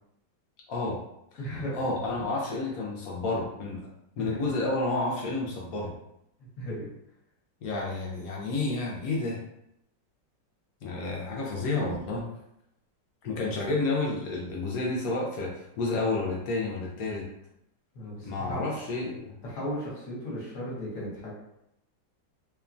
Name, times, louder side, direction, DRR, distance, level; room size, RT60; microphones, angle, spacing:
voice 1, 0.7-1.0 1.3-1.4 1.7-3.8 4.2-5.9 7.6-9.4 10.8-12.3 13.2-17.3 18.2-19.3, left 2 dB, 70° left, -3 dB, 0.8 m, -30 dB
voice 2, 1.4-1.8 4.2-4.4 6.6-6.9 17.9-18.6 19.4-21.3, equal, 55° left, -6 dB, 1.1 m, -35 dB
2.9 x 2.2 x 2.4 m, 0.80 s
omnidirectional pair, 1.9 m